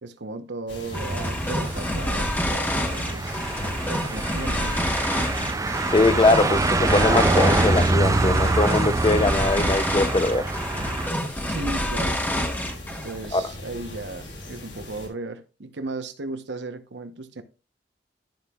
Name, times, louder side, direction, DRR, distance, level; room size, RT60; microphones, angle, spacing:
voice 1, 0.0-5.1 11.5-12.2 12.9-17.4, right 2 dB, 75° right, 1.0 m, -36 dB
sound 1, 0.7-15.1, left 1 dB, 90° left, 3.3 m, -40 dB
sound 2, 0.9-13.2, equal, 10° left, 1.3 m, -28 dB
sound 3, 0.9-11.1, right 2 dB, 20° right, 0.4 m, -25 dB
voice 2, 5.9-10.5 13.3-13.4, left 2 dB, 25° left, 0.6 m, -21 dB
13.0 x 6.0 x 2.4 m
head